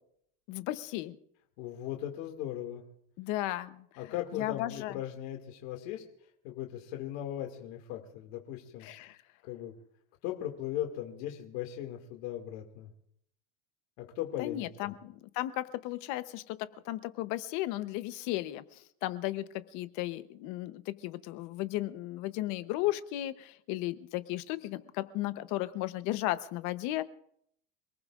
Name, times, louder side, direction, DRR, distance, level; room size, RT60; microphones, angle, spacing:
voice 1, 0.5-1.2 3.2-3.9 4.3-5.0 8.8-9.2 14.4-16.6 16.9-27.1, left 16 dB, 50° left, 12 dB, 0.9 m, -35 dB
voice 2, 1.6-2.8 4.0-6.0 6.4-8.9 9.4-9.7 10.2-12.9 14.0-14.9, left 12 dB, 65° left, 2 dB, 2.3 m, -38 dB
28.0 x 19.0 x 2.5 m, 0.70 s
cardioid pair, 165°, 39 cm